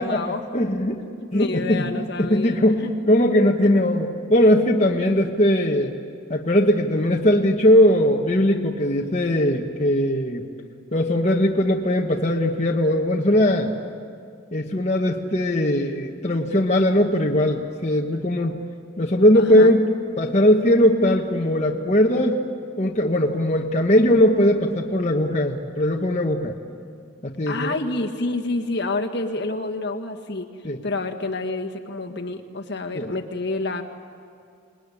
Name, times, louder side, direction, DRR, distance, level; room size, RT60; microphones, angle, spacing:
voice 1, 0.0-0.6 1.2-2.9 19.3-19.7 27.5-30.5 30.8-33.8, left 2 dB, 50° left, 3 dB, 1.7 m, -28 dB
voice 2, 0.5-1.0 1.3-1.9 2.2-5.9 6.3-10.5 10.9-13.7 14.5-18.6 19.0-19.9 20.2-22.4 22.8-26.5 27.2-27.7 30.6-30.8 32.9-33.1, left 1 dB, 30° left, -1 dB, 1.3 m, -19 dB
28.0 x 20.0 x 9.9 m, 2.3 s
head